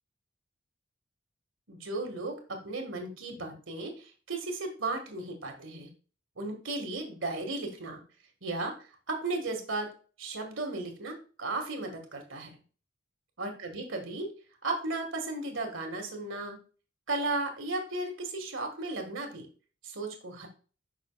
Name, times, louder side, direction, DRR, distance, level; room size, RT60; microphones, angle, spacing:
voice 1, 1.7-5.9 6.4-8.0 8.4-9.9 10.2-12.6 13.4-14.3 14.6-16.6 17.1-19.5 19.8-20.5, right 2 dB, 80° right, 4 dB, 1.9 m, -35 dB
11.0 x 6.1 x 2.4 m, 0.37 s
head